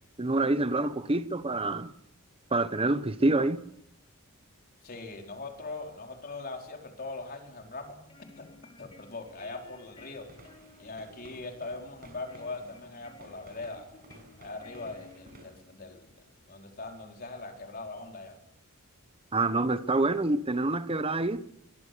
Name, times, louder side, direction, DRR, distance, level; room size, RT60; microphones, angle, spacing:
voice 1, 0.2-1.9 2.5-3.6 19.3-21.4, right 2 dB, 25° right, 1.1 m, -27 dB
voice 2, 4.8-8.0 8.4-8.5 8.8-10.3 10.8-13.9 14.4-18.4, left 3 dB, 45° left, 4.4 m, -41 dB
sound 1, 7.8-15.9, left 2 dB, 25° left, 2.9 m, -56 dB
sound 2, 10.0-15.4, right 1 dB, 45° right, 6.9 m, -55 dB
23.0 x 22.5 x 6.9 m
head